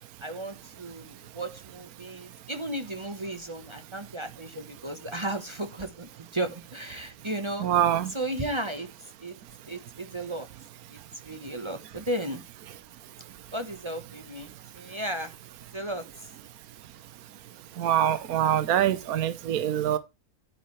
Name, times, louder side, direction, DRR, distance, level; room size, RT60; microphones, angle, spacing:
voice 1, 0.2-7.7 8.1-8.9 9.2-9.3 9.7-10.5 10.9-11.0 11.2-12.4 13.5-15.3 15.7-16.0, right 1 dB, 20° right, 1.1 m, -34 dB
voice 2, 7.6-8.1 17.8-20.0, right 10 dB, 70° right, 1.3 m, -24 dB
10.0 x 9.1 x 3.2 m
omnidirectional pair, 1.6 m